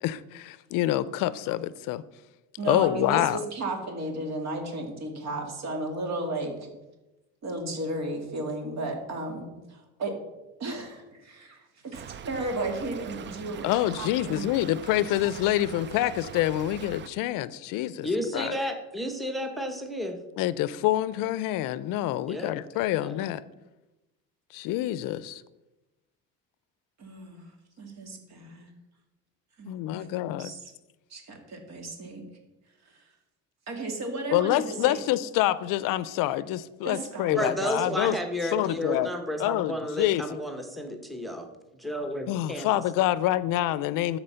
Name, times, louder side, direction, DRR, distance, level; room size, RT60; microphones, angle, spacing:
voice 1, 0.0-2.0 2.7-3.4 13.6-18.1 18.3-18.5 20.4-23.4 24.5-25.4 29.7-30.5 34.3-38.2 38.5-39.1 39.4-40.4 42.3-44.2, left 14 dB, 70° left, 17 dB, 0.5 m, -27 dB
voice 2, 2.6-6.7 7.4-10.2 10.6-13.7 14.0-14.5 27.0-27.5 27.8-28.7 29.6-30.7 31.1-32.2 32.9-33.1 33.7-35.0 36.8-37.5 37.9-38.0 38.6-38.8, right 2 dB, 50° right, 3 dB, 2.4 m, -34 dB
Stream / Trickle dribble, 11.9-17.1, right 8 dB, 35° right, 0.5 m, -42 dB
voice 3, 18.0-20.2 22.3-22.5 22.9-23.1 37.3-42.7, equal, ahead, 4 dB, 1.1 m, -32 dB
13.0 x 4.4 x 5.6 m, 1.0 s
cardioid pair, 110°, 34 cm